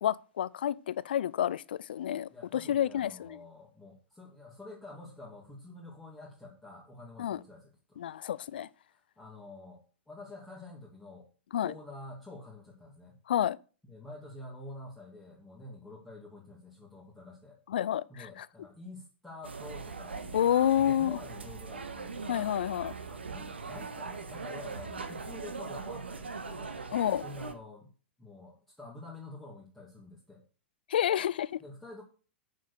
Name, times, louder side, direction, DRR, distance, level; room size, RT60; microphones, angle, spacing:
voice 1, 0.0-3.4 7.2-7.4 8.0-8.7 11.5-11.7 13.3-13.6 17.7-18.3 20.3-21.2 22.3-22.9 26.9-27.2 30.9-31.6, left 10 dB, 55° left, 0.5 m, -29 dB
voice 2, 2.3-8.0 8.9-11.3 11.6-13.2 13.8-17.6 18.1-22.6 23.0-26.7 27.2-27.9 28.2-30.4 31.6-32.0, left 2 dB, 5° left, 2.7 m, -48 dB
sound 1, 19.4-27.5, right 4 dB, 70° right, 1.4 m, -41 dB
9.2 x 6.5 x 6.6 m
figure-of-eight pair, 100°, 6 cm